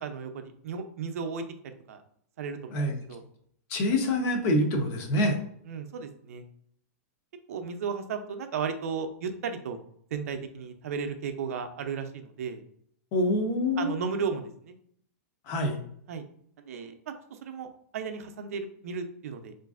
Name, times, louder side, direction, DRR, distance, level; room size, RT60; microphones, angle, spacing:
voice 1, 0.0-1.4 1.9-2.0 2.4-2.8 3.1-3.2 5.7-6.4 7.5-9.8 10.1-12.6 13.8-14.7 16.1-16.2 16.6-17.1 17.4-17.7 17.9-19.6, right 6 dB, 65° right, 7 dB, 0.5 m, -34 dB
voice 2, 2.7-3.0 3.7-5.4 13.1-13.9 15.5-15.8, left 1 dB, 25° left, 4 dB, 0.5 m, -26 dB
3.9 x 2.5 x 2.4 m, 0.66 s
supercardioid pair, 175°, 9 cm